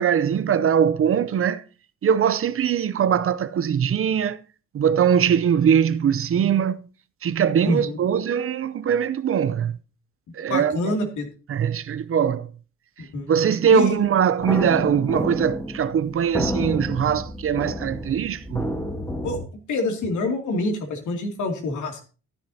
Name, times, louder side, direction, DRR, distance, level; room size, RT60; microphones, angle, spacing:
voice 1, 0.0-1.6 2.0-4.4 4.7-6.8 7.2-9.8 10.3-11.0 11.5-12.5 13.3-18.7, right 8 dB, 45° right, 0.6 m, -21 dB
voice 2, 7.6-8.0 10.5-11.3 13.1-13.3 13.7-14.0 19.2-19.4 19.7-22.1, left 2 dB, 75° left, 2.6 m, -26 dB
sound 1, 14.4-19.5, equal, 10° left, 2.0 m, -30 dB
13.5 x 9.6 x 2.8 m
cardioid pair, 90°, 30 cm